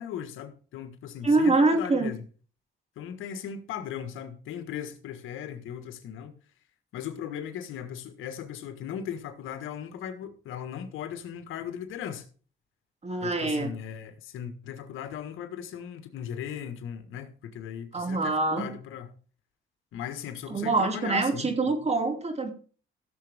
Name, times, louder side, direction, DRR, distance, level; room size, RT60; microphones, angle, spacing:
voice 1, 0.0-2.2 2.9-6.4 6.9-12.2 13.2-19.1 19.9-21.5, left 9 dB, 85° left, 1.6 m, -38 dB
voice 2, 1.2-2.1 13.0-13.7 17.9-18.7 20.5-22.5, right 3 dB, 35° right, 2.7 m, -25 dB
16.5 x 7.3 x 3.6 m
cardioid pair, 90°, 20 cm